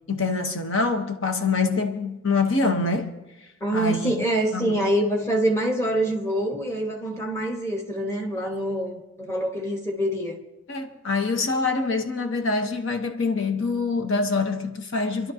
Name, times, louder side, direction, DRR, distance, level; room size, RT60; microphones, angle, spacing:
voice 1, 0.1-3.1 3.7-4.1 4.5-4.8 10.7-15.3, left 3 dB, 75° left, 1.0 m, -25 dB
voice 2, 3.6-10.4, right 1 dB, 15° left, 1.4 m, -25 dB
28.0 x 11.5 x 2.8 m
head